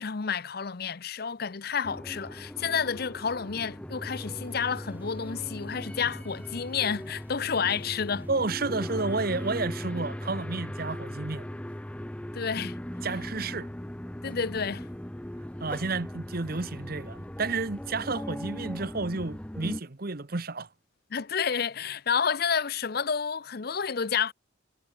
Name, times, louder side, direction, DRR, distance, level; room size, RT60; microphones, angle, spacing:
voice 1, 0.0-8.3 12.3-12.8 14.2-14.9 21.1-24.3, left 6 dB, 50° left, 0.7 m, -30 dB
sound 1, 1.8-19.8, equal, 5° left, 0.5 m, -38 dB
sound 2, 4.1-9.6, right 2 dB, 10° right, 3.8 m, -62 dB
voice 2, 8.3-11.5 13.0-13.7 15.6-20.7, right 3 dB, 50° right, 1.1 m, -31 dB
head